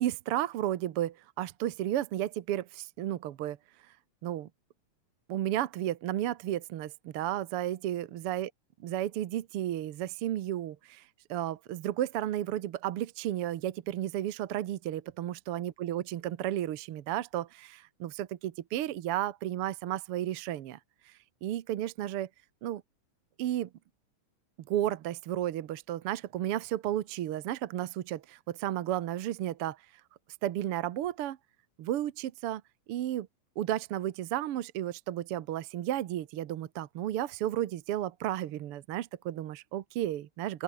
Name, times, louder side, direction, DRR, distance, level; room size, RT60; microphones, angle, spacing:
voice 1, 0.0-3.6 4.2-4.5 5.3-8.5 8.8-20.8 21.1-21.2 21.4-22.3 22.6-22.8 23.4-23.7 24.7-29.8 30.4-31.4 31.8-32.6 32.9-33.3 33.6-40.6, right 12 dB, 65° right, 1.5 m, -33 dB
open air
omnidirectional pair, 3.6 m